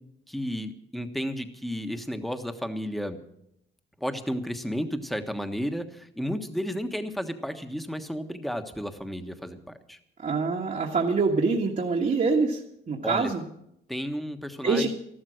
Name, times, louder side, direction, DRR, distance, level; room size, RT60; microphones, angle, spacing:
voice 1, 0.3-3.2 4.0-10.0 13.0-13.3 13.9-14.9, equal, ahead, 7 dB, 1.4 m, -32 dB
voice 2, 10.2-13.4 14.6-14.9, right 4 dB, 40° right, -1 dB, 1.6 m, -25 dB
13.5 x 12.5 x 6.4 m, 0.76 s
cardioid pair, 90°, 20 cm